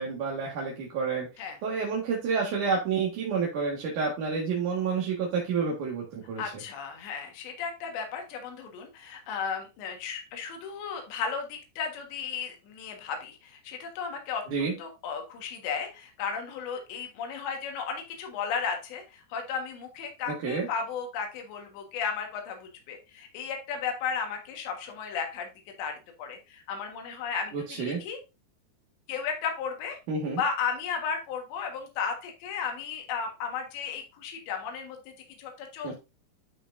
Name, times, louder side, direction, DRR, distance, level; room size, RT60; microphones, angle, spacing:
voice 1, 0.0-1.3 1.6-6.6 14.5-14.7 20.3-20.7 27.5-28.0 30.1-30.4 35.8-35.9, right 5 dB, 55° right, -2 dB, 2.8 m, -29 dB
voice 2, 6.4-25.5 25.8-25.9 26.2-28.2 29.1-30.0 30.4-35.0 35.4-36.0, left 6 dB, 80° left, 3 dB, 3.8 m, -34 dB
12.0 x 5.9 x 2.6 m, 0.28 s
omnidirectional pair, 5.0 m